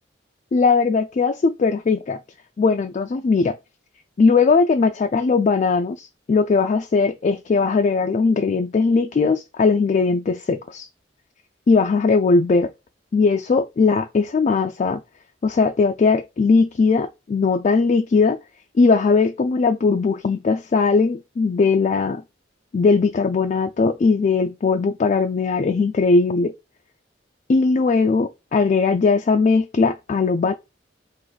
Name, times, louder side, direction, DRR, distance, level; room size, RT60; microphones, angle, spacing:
voice 1, 0.5-2.2 2.6-3.6 4.2-10.9 11.7-12.7 13.1-15.0 15.4-18.4 18.8-22.2 22.7-26.5 27.5-30.5, left 4 dB, 40° left, 0.3 m, -19 dB
3.9 x 2.5 x 4.7 m
head